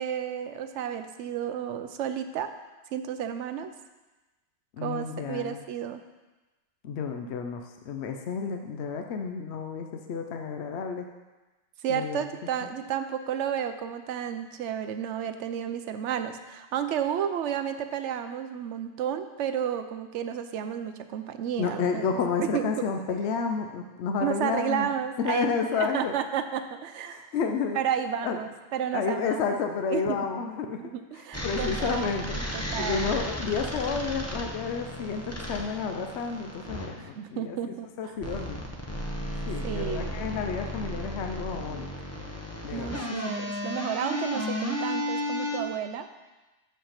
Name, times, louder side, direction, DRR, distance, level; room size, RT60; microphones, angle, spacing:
voice 1, 0.0-2.5 2.9-3.7 4.8-6.0 11.8-22.1 22.4-22.9 24.2-25.5 25.8-27.3 27.7-29.4 29.9-30.2 30.8-33.1 37.0-38.1 39.6-40.1 42.7-46.1, right 9 dB, 65° right, 9 dB, 0.8 m, -32 dB
voice 2, 4.8-5.6 6.8-11.1 11.9-12.3 21.6-24.9 25.2-26.1 27.1-27.8 28.2-28.4 28.9-30.8 31.4-32.4 32.8-37.6 38.0-38.6 39.5-41.9 42.6-43.0, left 5 dB, 60° left, 5 dB, 0.8 m, -30 dB
sound 1, 31.3-36.9 38.2-45.6, left 1 dB, 15° left, 0.8 m, -34 dB
6.8 x 5.3 x 5.7 m, 1.1 s
omnidirectional pair, 1.4 m